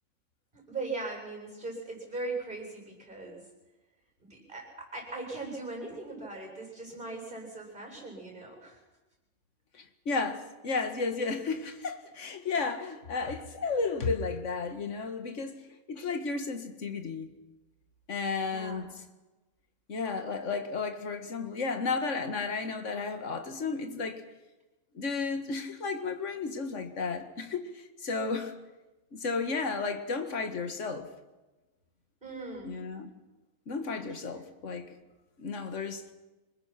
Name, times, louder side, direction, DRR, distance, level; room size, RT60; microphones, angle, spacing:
voice 1, 0.5-3.4 4.2-8.8 18.4-18.9 32.2-32.7, right 3 dB, 35° right, 0 dB, 7.9 m, -39 dB
voice 2, 9.7-15.6 15.9-17.3 18.1-18.9 19.9-24.2 24.9-28.5 29.1-31.1 32.6-33.1 33.7-35.0 35.4-36.0, left 4 dB, 55° left, 7 dB, 2.1 m, -33 dB
25.5 x 21.5 x 6.0 m, 1.1 s
omnidirectional pair, 1.5 m